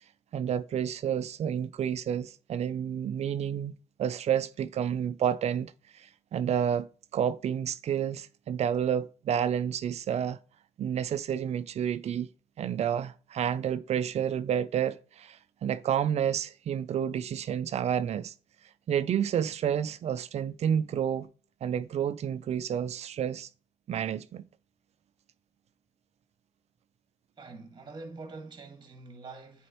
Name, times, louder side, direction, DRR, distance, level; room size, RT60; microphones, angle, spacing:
voice 1, 0.3-3.7 4.0-6.9 7.1-10.4 10.8-12.3 12.6-18.3 18.9-21.3 21.6-23.5 23.9-24.4, right 9 dB, 55° right, 0.4 m, -30 dB
voice 2, 27.4-29.7, right 3 dB, 35° right, 1.6 m, -45 dB
8.3 x 4.3 x 3.0 m
supercardioid pair, 65°, 13 cm